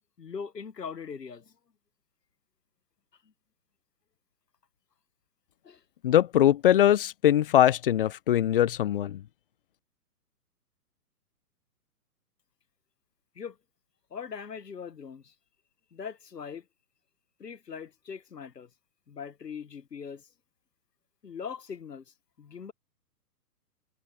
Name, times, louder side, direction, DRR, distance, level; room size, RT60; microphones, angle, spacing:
voice 1, 0.2-1.5 5.6-5.8 13.3-13.6 14.1-15.3 15.9-16.6 17.4-18.7 19.1-20.3 21.2-22.0 22.4-22.7, left 6 dB, 85° left, 1.3 m, -40 dB
voice 2, 6.0-9.2, left 11 dB, 35° left, 0.5 m, -22 dB
figure-of-eight pair, 125°, 48 cm